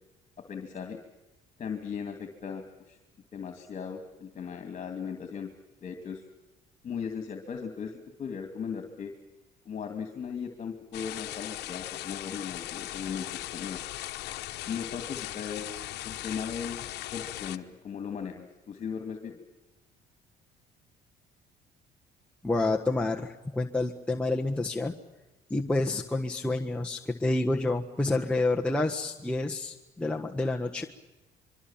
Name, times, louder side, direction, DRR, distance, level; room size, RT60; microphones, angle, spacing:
voice 1, 0.4-1.0 1.6-3.0 3.3-5.5 5.8-6.2 6.8-9.1 9.6-13.8 14.7-15.7 16.0-16.8 17.1-19.4, left 6 dB, 45° left, 6 dB, 2.5 m, -37 dB
sound 1, 10.9-17.6, left 16 dB, 80° left, 1.1 m, -38 dB
voice 2, 22.4-24.9 25.5-30.8, left 2 dB, 5° left, 0 dB, 1.4 m, -28 dB
25.0 x 24.0 x 7.4 m, 1.1 s
cardioid pair, 110°, 17 cm